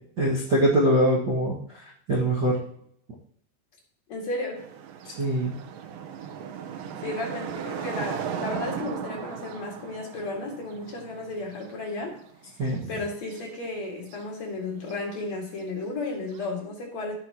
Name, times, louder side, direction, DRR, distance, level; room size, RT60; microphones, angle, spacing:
voice 1, 0.2-2.6 5.2-5.5 12.6-12.9, right 1 dB, 55° right, -7 dB, 1.2 m, -23 dB
voice 2, 4.1-4.6 7.0-12.2 12.9-17.1, left 2 dB, 45° left, -1 dB, 2.8 m, -33 dB
sound 1, 4.6-12.8 13.1-13.6 14.1-14.2 14.9-15.0 16.3-16.5, right 8 dB, 75° right, 2.2 m, -37 dB
16.0 x 6.1 x 3.0 m, 0.68 s
omnidirectional pair, 5.0 m